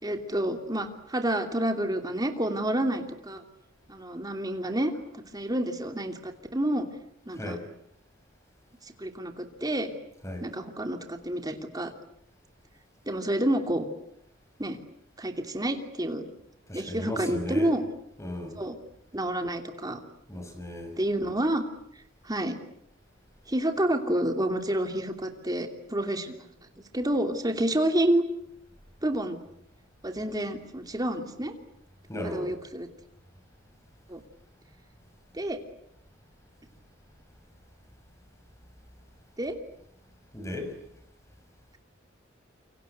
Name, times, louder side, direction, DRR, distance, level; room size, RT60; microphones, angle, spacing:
voice 1, 0.0-3.4 3.9-4.9 5.3-6.9 7.3-7.6 9.0-9.9 10.4-11.9 13.1-13.9 14.6-14.8 15.2-16.2 16.7-17.8 18.6-18.8 19.1-20.0 21.0-21.6 22.2-22.6 23.5-26.4 26.9-28.2 29.0-29.4 30.0-31.5 32.2-32.9 34.1-34.2 35.3-35.6 39.4-39.6, right 1 dB, 20° right, 5 dB, 2.9 m, -29 dB
voice 2, 16.7-17.7 18.2-18.6 20.3-21.0 32.1-32.5 40.3-40.8, left 1 dB, 15° left, 6 dB, 5.9 m, -36 dB
28.0 x 24.5 x 8.1 m, 0.74 s
head